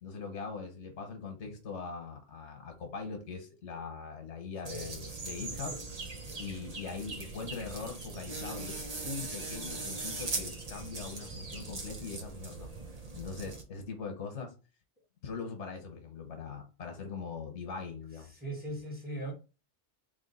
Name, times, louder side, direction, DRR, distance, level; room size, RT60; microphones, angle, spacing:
voice 1, 0.0-5.8 6.4-12.7 13.1-14.5 15.2-18.3, left 5 dB, 85° left, 1.3 m, -41 dB
voice 2, 4.6-5.0 5.5-5.8 6.2-6.4 18.3-19.3, right 1 dB, 10° right, 1.5 m, -40 dB
sound 1, 4.6-13.6, right 3 dB, 40° right, 0.8 m, -40 dB
3.6 x 3.1 x 4.1 m
omnidirectional pair, 1.2 m